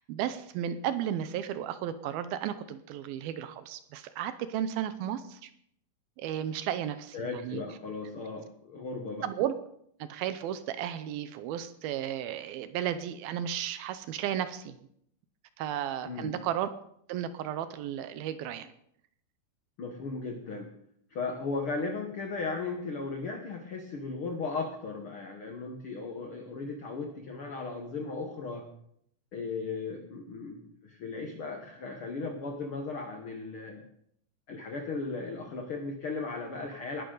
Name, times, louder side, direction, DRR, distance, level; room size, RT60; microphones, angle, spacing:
voice 1, 0.0-5.5 6.2-7.6 9.2-9.5 10.0-14.8 15.6-16.7 17.1-18.7, right 10 dB, 80° right, 12 dB, 2.5 m, -34 dB
voice 2, 7.1-9.3 16.0-16.4 19.8-20.7 21.1-28.7 29.3-33.9 34.5-37.0, left 4 dB, 75° left, 4 dB, 1.2 m, -36 dB
20.0 x 11.5 x 4.0 m, 0.70 s
omnidirectional pair, 4.5 m